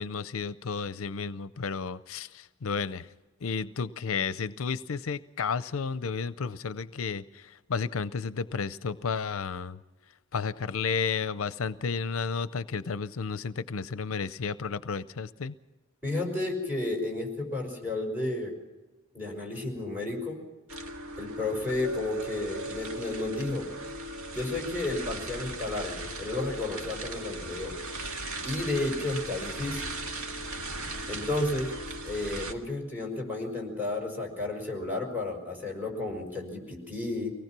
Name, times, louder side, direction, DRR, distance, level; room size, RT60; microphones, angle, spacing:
voice 1, 0.0-3.1 3.4-9.8 10.3-15.5, left 5 dB, 70° left, 15 dB, 0.6 m, -32 dB
voice 2, 16.0-18.5 19.1-20.4 21.2-23.7 24.3-27.8 28.4-29.9 31.1-31.7 32.0-37.3, left 2 dB, 10° right, 0 dB, 5.6 m, -32 dB
sound 1, 20.7-32.5, right 2 dB, 75° right, 2.0 m, -38 dB
24.5 x 18.5 x 6.0 m, 1.1 s
head